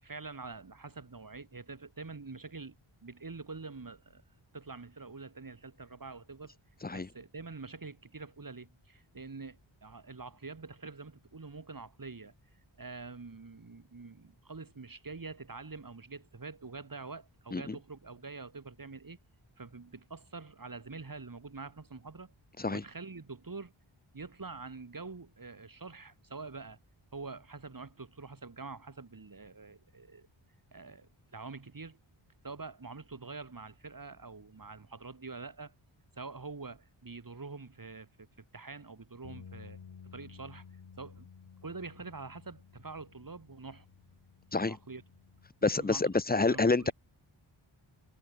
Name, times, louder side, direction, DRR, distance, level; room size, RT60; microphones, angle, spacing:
voice 1, 0.0-2.8 3.0-4.2 4.5-6.6 6.9-19.2 19.6-22.3 22.7-23.7 24.1-26.8 27.1-30.3 30.7-32.0 32.4-35.7 36.1-39.8 40.0-40.6 41.0-41.3 41.6-43.9 44.5-45.0 45.6-46.1 46.5-46.9, right 4 dB, 40° right, 4.5 m, -46 dB
sound 1, 39.2-45.5, left 6 dB, 80° left, 3.4 m, -54 dB
voice 2, 45.6-46.9, left 3 dB, 20° left, 0.7 m, -28 dB
wide cardioid pair, 85°, 50 cm